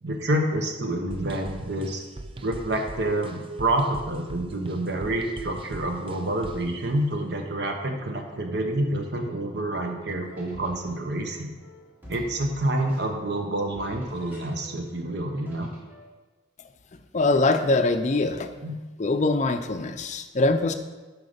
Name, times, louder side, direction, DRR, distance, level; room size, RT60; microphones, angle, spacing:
voice 1, 0.0-2.0 2.4-11.5 12.1-15.7 18.6-18.8, right 1 dB, 55° right, 4 dB, 0.9 m, -28 dB
sound 1, 1.1-6.7, right 2 dB, 25° right, 0.4 m, -41 dB
sound 2, 10.0-16.1, equal, 10° right, 1.3 m, -49 dB
voice 2, 17.1-18.5 19.0-20.7, left 2 dB, 35° left, 8 dB, 0.5 m, -23 dB
8.1 x 4.8 x 5.1 m, 1.3 s
head